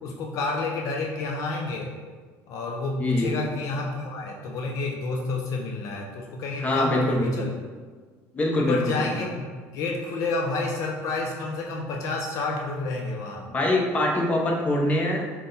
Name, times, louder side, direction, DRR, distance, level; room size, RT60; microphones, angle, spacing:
voice 1, 0.0-1.9 2.5-7.5 8.5-9.5 9.7-13.5, left 3 dB, 55° left, 0 dB, 0.5 m, -29 dB
voice 2, 3.0-3.3 6.6-7.5 8.3-9.1 13.5-15.2, left 1 dB, 20° left, -1 dB, 0.7 m, -24 dB
5.7 x 2.2 x 3.9 m, 1.5 s
cardioid pair, 145°, 7 cm